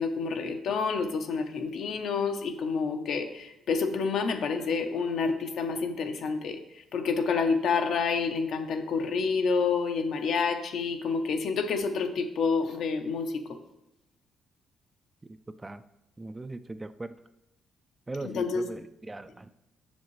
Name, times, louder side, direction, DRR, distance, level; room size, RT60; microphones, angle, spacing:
voice 1, 0.0-6.6 6.9-13.3 18.2-18.7, left 5 dB, 70° left, 6 dB, 0.7 m, -28 dB
voice 2, 16.2-17.1 18.1-19.5, right 2 dB, 20° right, 11 dB, 0.3 m, -39 dB
7.1 x 6.3 x 3.1 m, 0.88 s
cardioid pair, 90°, 0 cm